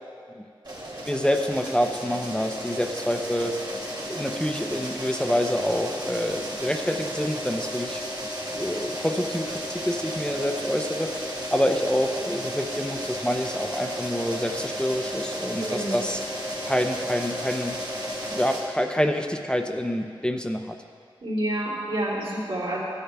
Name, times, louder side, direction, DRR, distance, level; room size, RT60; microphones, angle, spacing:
sound 1, 0.6-18.6, equal, 55° right, 2.5 m, -33 dB
voice 1, 1.1-3.6 4.1-8.0 8.5-16.2 16.6-17.8 18.3-20.8, equal, 10° left, 4 dB, 0.6 m, -27 dB
voice 2, 15.6-16.0 21.2-22.8, right 1 dB, 85° right, -6 dB, 2.7 m, -28 dB
16.5 x 10.0 x 2.3 m, 2.2 s
wide cardioid pair, 65°, 9 cm